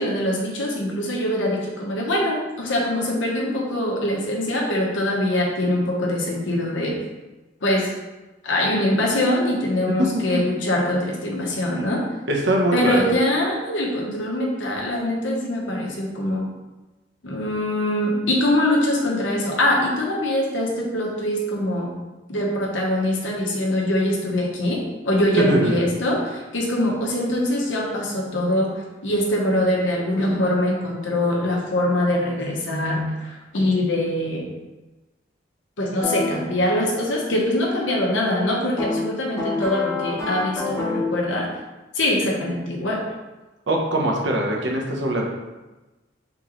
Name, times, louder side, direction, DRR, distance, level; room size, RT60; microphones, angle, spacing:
voice 1, 0.0-7.0 7.6-7.9 8.4-12.0 12.7-16.4 17.2-21.9 22.3-34.5 35.8-41.5 41.9-43.0, left 1 dB, 80° left, -1 dB, 0.9 m, -23 dB
voice 2, 10.0-10.4 12.3-13.1 25.4-25.8 43.7-45.2, right 1 dB, 65° right, -1 dB, 0.9 m, -22 dB
sound 1, 36.0-36.3 38.8-41.2, left 3 dB, 15° left, 0.9 m, -26 dB
3.7 x 3.0 x 3.8 m, 1.1 s
head